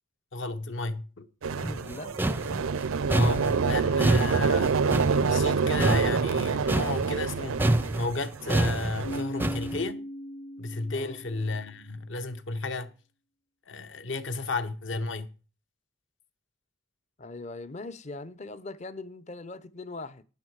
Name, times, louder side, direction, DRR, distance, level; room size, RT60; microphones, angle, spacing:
voice 1, 0.3-1.2 3.1-4.7 5.2-7.6 8.0-10.0 10.6-12.9 13.7-15.3, left 3 dB, 60° left, 1.0 m, -33 dB
sound 1, 1.4-9.2, right 5 dB, 80° right, 0.5 m, -27 dB
voice 2, 1.6-2.2 10.9-11.2 17.2-20.2, left 2 dB, 35° left, 0.6 m, -41 dB
sound 2, 1.6-7.3 7.6-9.8, right 1 dB, 10° right, 0.4 m, -27 dB
Keyboard (musical), 9.0-11.7, left 1 dB, 80° left, 0.8 m, -38 dB
12.0 x 9.5 x 4.7 m
head